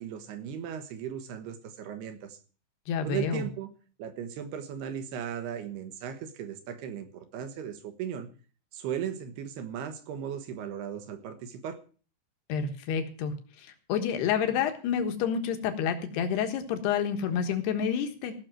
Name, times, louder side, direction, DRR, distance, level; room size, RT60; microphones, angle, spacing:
voice 1, 0.0-2.4 3.0-3.7 4.0-8.3 8.7-11.8, right 9 dB, 65° right, 8 dB, 3.1 m, -37 dB
voice 2, 2.9-3.5 12.5-18.3, left 7 dB, 65° left, 7 dB, 3.2 m, -29 dB
17.0 x 6.6 x 7.6 m, 0.40 s
omnidirectional pair, 5.4 m